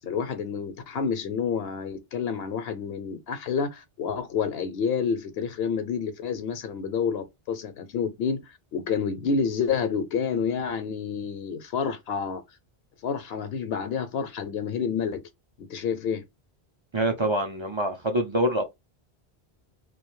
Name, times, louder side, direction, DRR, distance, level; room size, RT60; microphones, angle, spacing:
voice 1, 0.0-12.4 13.0-15.2 15.6-16.2, left 6 dB, 75° left, 0.8 m, -29 dB
voice 2, 16.9-18.6, right 1 dB, 50° right, 0.3 m, -25 dB
2.4 x 2.2 x 2.9 m
omnidirectional pair, 1.0 m